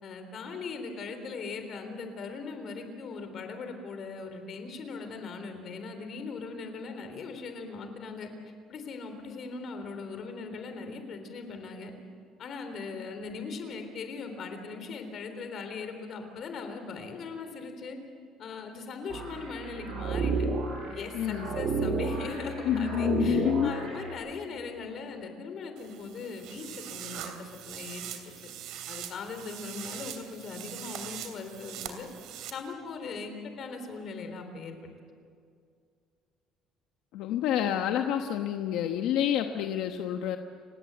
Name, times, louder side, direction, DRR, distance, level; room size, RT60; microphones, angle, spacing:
voice 1, 0.0-8.3 8.7-11.9 12.4-18.0 18.4-20.4 20.9-28.2 28.9-32.1 32.5-34.9, left 4 dB, 40° left, 6 dB, 3.6 m, -39 dB
sound 1, 19.1-24.1, right 4 dB, 50° right, 6.6 m, -32 dB
voice 2, 21.1-21.5 22.7-23.7 37.1-40.4, left 10 dB, 75° left, 5 dB, 1.1 m, -28 dB
sound 2, 25.8-32.5, right 10 dB, 65° right, 2.9 m, -42 dB
30.0 x 17.5 x 8.2 m, 2.3 s
cardioid pair, 170°, 0 cm